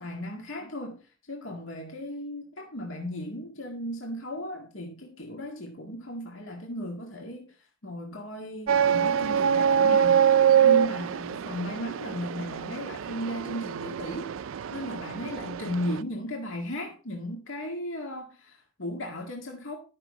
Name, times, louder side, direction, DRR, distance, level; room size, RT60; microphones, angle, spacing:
voice 1, 0.0-7.6 7.8-10.2 10.6-14.4 14.7-19.8, equal, 65° left, 1.9 m, -36 dB
sound 1, 8.7-16.0, right 8 dB, 70° right, 0.4 m, -24 dB
12.0 x 6.0 x 4.8 m
head